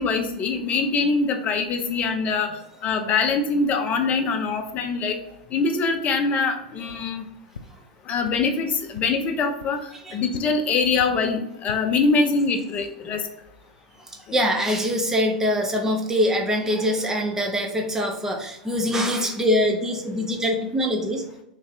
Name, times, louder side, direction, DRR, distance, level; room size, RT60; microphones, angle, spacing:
voice 1, 0.0-2.5 2.8-5.2 5.5-7.2 8.1-9.8 10.1-13.2, left 4 dB, 35° left, 5 dB, 0.6 m, -23 dB
sound 1, 6.8-7.0 7.5-7.6 8.2-8.3 8.9-9.0 9.6-9.7 10.3-10.4 10.9-11.1 11.5-11.8, left 5 dB, 85° left, 0.3 m, -39 dB
voice 2, 14.3-21.2, equal, 10° right, 3 dB, 0.8 m, -23 dB
3.2 x 2.7 x 3.9 m, 0.86 s
hypercardioid pair, 95°, 4 cm